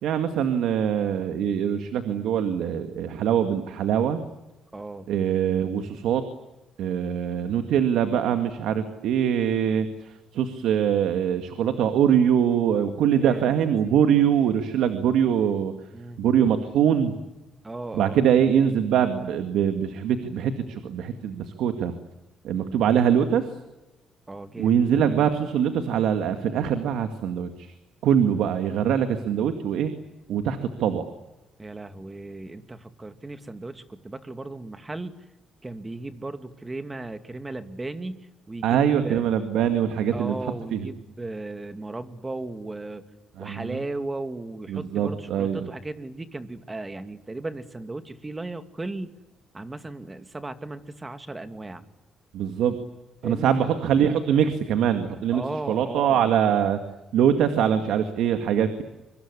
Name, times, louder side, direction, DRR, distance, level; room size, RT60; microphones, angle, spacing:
voice 1, 0.0-4.2 5.1-6.2 6.8-15.7 16.2-17.2 17.9-21.9 22.4-23.6 24.6-27.7 28.0-29.9 30.3-31.0 38.6-40.4 40.7-40.8 43.4-43.8 44.7-45.6 52.3-52.8 53.2-55.4 55.7-56.8 57.1-58.8, right 8 dB, 85° right, 8 dB, 2.1 m, -23 dB
voice 2, 4.7-5.1 13.2-13.6 15.9-16.2 17.6-18.2 24.3-25.1 31.6-35.1 35.6-39.2 40.1-43.1 43.4-49.2 49.5-51.8 53.2-53.5 55.3-56.5, right 2 dB, 20° right, 9 dB, 2.5 m, -36 dB
24.5 x 24.0 x 9.9 m, 0.99 s
cardioid pair, 90°, 0 cm